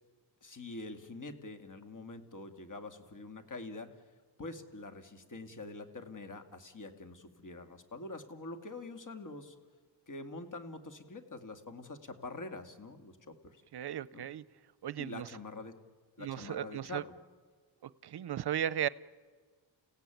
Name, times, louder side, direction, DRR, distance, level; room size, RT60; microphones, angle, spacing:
voice 1, 0.4-4.0 4.4-9.6 10.1-13.6 14.1-14.2 15.0-15.8 16.2-17.1, left 2 dB, 45° left, 2.4 m, -45 dB
voice 2, 13.7-14.4 14.8-15.3 16.2-17.0 18.0-18.9, right 10 dB, 60° right, 0.7 m, -35 dB
30.0 x 16.5 x 9.2 m
cardioid pair, 80°, 44 cm